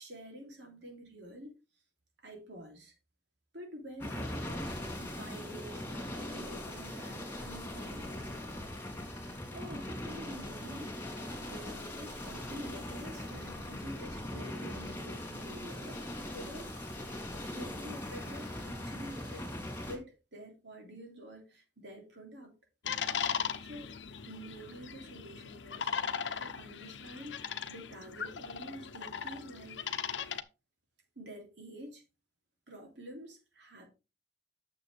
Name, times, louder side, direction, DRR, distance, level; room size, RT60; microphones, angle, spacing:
voice 1, 0.0-1.5 2.2-2.9 3.5-8.7 9.5-10.9 11.4-16.7 17.4-19.5 19.8-22.5 23.6-23.9 24.3-25.9 26.4-27.3 27.7-29.9 31.2-32.0 32.7-33.9, right 1 dB, 75° right, 3.1 m, -48 dB
sound 1, 4.0-20.0, left 1 dB, 10° left, 2.7 m, -40 dB
sound 2, 22.8-30.4, left 6 dB, 85° left, 0.8 m, -38 dB
9.3 x 6.9 x 3.4 m
head